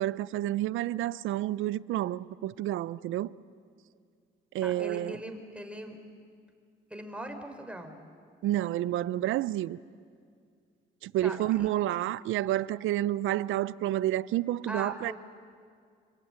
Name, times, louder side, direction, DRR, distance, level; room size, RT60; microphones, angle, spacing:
voice 1, 0.0-3.3 4.5-5.2 8.4-9.8 11.0-15.1, right 14 dB, 85° right, 0.6 m, -29 dB
voice 2, 4.6-6.0 6.9-8.0 11.2-11.7 14.7-15.1, right 1 dB, 5° right, 4.0 m, -40 dB
25.5 x 25.5 x 8.9 m
cardioid pair, 90°, 20 cm